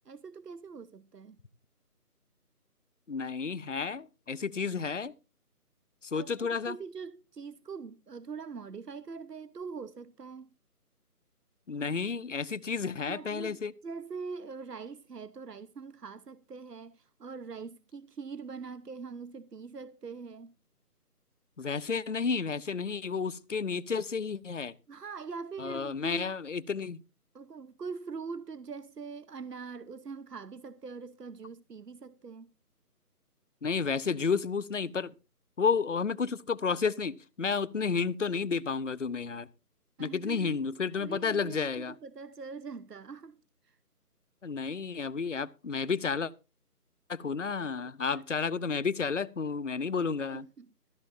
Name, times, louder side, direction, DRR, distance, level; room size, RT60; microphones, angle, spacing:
voice 1, 0.0-1.4 6.1-10.5 13.1-20.5 24.9-26.3 27.3-32.5 40.0-40.6 41.0-43.4 43.7-43.8 48.1-48.2 50.3-50.7, right 5 dB, 85° right, 1.1 m, -43 dB
voice 2, 3.1-5.1 6.0-6.8 11.7-13.7 21.6-24.7 25.6-27.0 33.6-35.1 35.6-39.5 40.0-41.9 44.4-46.3 47.1-50.5, left 5 dB, 50° left, 0.7 m, -31 dB
14.5 x 14.0 x 2.6 m
figure-of-eight pair, 170°, 47 cm